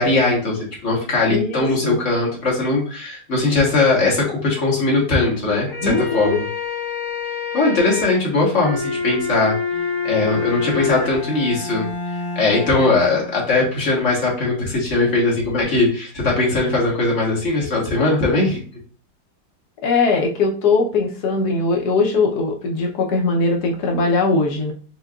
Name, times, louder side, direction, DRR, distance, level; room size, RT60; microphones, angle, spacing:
voice 1, 0.0-6.4 7.5-9.5 10.0-11.9 12.3-18.6, left 3 dB, 45° left, -4 dB, 1.6 m, -19 dB
voice 2, 1.3-2.0 5.8-6.4 19.8-24.7, left 3 dB, 65° left, 1 dB, 1.2 m, -20 dB
sound 1, 5.5-11.1, left 5 dB, 30° left, 1.1 m, -26 dB
Bowed string instrument, 9.7-13.8, left 2 dB, 85° right, 2.3 m, -33 dB
6.4 x 2.3 x 2.4 m, 0.42 s
omnidirectional pair, 1.9 m